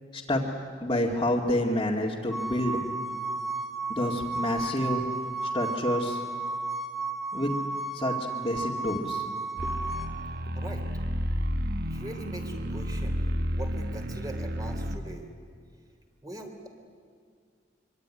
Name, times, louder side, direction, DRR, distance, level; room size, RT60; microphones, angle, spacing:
voice 1, 0.1-0.5 0.8-2.8 3.9-5.0 5.4-6.2 7.3-7.5 7.9-9.3 9.6-9.8, left 1 dB, 25° left, -3 dB, 2.2 m, -28 dB
sound 1, 2.3-10.1, right 3 dB, 5° right, 1.6 m, -33 dB
sound 2, 9.6-15.0, equal, 60° right, 1.3 m, -31 dB
voice 2, 10.5-10.9 11.9-13.2 13.5-15.3 16.2-16.7, right 1 dB, 20° right, 4 dB, 3.4 m, -41 dB
25.0 x 24.0 x 9.9 m, 2.2 s
head